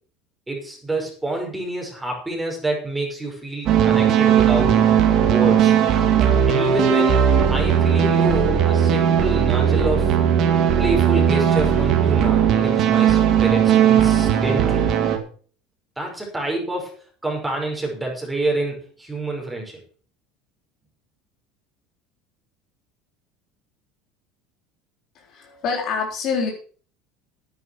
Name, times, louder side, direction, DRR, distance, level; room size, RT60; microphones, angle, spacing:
voice 1, 0.5-5.8 6.5-10.2 10.8-14.9 16.0-19.8, right 2 dB, 10° right, 0 dB, 5.3 m, -27 dB
sound 1, 3.7-15.2, right 8 dB, 55° right, 2.4 m, -17 dB
voice 2, 25.2-26.5, left 5 dB, 55° left, 1 dB, 3.9 m, -26 dB
10.0 x 9.4 x 6.2 m, 0.43 s
supercardioid pair, 100°, 0 cm